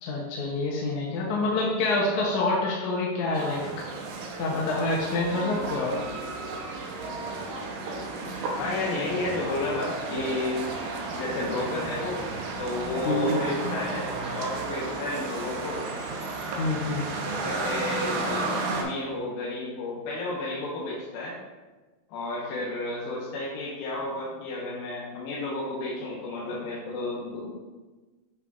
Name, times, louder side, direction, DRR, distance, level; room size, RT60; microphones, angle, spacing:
voice 1, 0.0-3.6 4.4-6.0 13.1-13.7 16.6-17.1, left 2 dB, 70° left, -3 dB, 1.9 m, -27 dB
sound 1, 3.3-18.8, right 3 dB, 90° right, 2.6 m, -33 dB
voice 2, 8.6-10.6 11.2-12.3 12.6-15.9 17.4-21.4 22.1-27.5, left 2 dB, 90° left, -6 dB, 2.9 m, -32 dB
8.4 x 5.6 x 2.4 m, 1.2 s
omnidirectional pair, 4.1 m